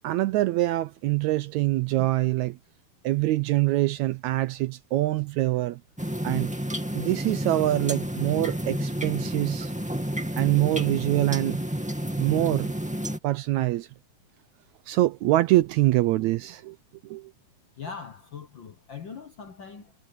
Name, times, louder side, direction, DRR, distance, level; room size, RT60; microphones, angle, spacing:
voice 1, 0.0-2.6 3.0-5.8 6.2-6.5 6.9-9.7 10.4-11.6 12.2-12.7 13.2-13.9 14.9-16.8 17.0-17.3, right 17 dB, 80° right, 1.7 m, -24 dB
sound 1, 6.0-13.2, equal, 5° right, 1.4 m, -30 dB
voice 2, 17.8-19.9, left 6 dB, 60° left, 1.3 m, -41 dB
omnidirectional pair, 3.7 m